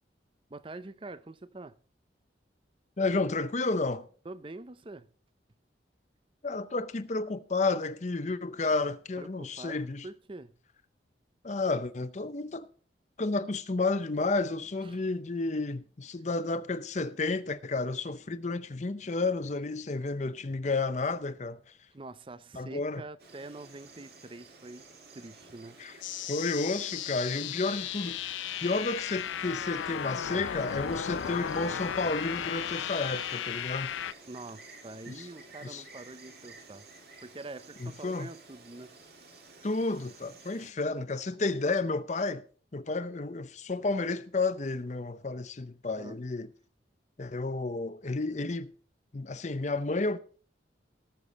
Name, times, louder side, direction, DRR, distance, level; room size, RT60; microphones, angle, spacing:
voice 1, 0.5-1.8 4.2-5.1 9.2-10.6 14.8-15.0 16.2-16.3 21.9-25.8 34.3-36.8 37.2-39.0 45.8-46.2, right 2 dB, 30° right, 0.5 m, -45 dB
voice 2, 3.0-4.1 6.4-10.1 11.4-12.7 13.2-21.6 22.6-23.0 25.8-25.9 26.3-33.9 35.1-35.3 35.6-35.8 37.8-38.3 39.6-42.4 42.7-46.5 47.2-48.7 49.1-50.2, left 3 dB, 40° left, 0.6 m, -31 dB
Insect, 23.2-40.7, right 3 dB, 55° right, 2.4 m, -53 dB
sound 1, 26.0-34.1, left 9 dB, 90° left, 0.4 m, -35 dB
18.5 x 6.9 x 4.0 m
head